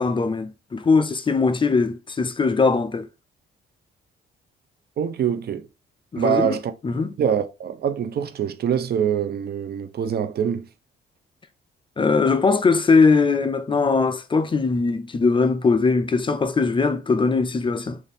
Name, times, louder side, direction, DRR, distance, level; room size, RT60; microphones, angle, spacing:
voice 1, 0.0-3.1 6.1-6.6 6.8-7.1 12.0-18.0, left 4 dB, 25° left, 0.4 m, -20 dB
voice 2, 5.0-5.7 6.2-10.7, right 8 dB, 55° right, 0.5 m, -25 dB
4.1 x 2.5 x 3.3 m
cardioid pair, 90°, 20 cm